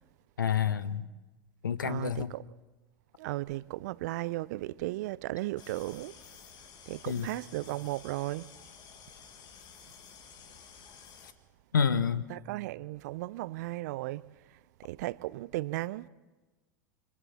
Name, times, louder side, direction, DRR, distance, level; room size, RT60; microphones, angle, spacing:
voice 1, 0.4-1.1 1.6-2.3 7.1-7.3 11.7-12.2, left 7 dB, 80° left, 1.0 m, -28 dB
voice 2, 1.8-2.5 3.2-6.2 6.9-8.5 11.9-12.0 12.3-16.1, right 18 dB, 60° right, 0.6 m, -36 dB
sound 1, 5.6-11.3, left 7 dB, 45° left, 2.2 m, -52 dB
29.5 x 25.5 x 4.3 m
figure-of-eight pair, 85°, 10 cm